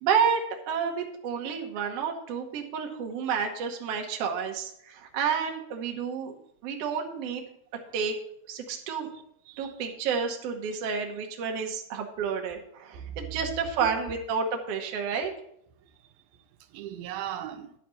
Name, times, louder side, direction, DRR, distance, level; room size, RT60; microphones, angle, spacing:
voice 1, 0.0-6.3 6.6-7.5 7.9-8.2 8.5-9.1 9.6-15.3, right 6 dB, 60° right, 1.8 m, -30 dB
voice 2, 9.5-9.9 13.0-13.3 13.6-13.9 16.7-17.8, right 10 dB, 85° right, 2.4 m, -38 dB
11.0 x 4.2 x 7.5 m
omnidirectional pair, 4.1 m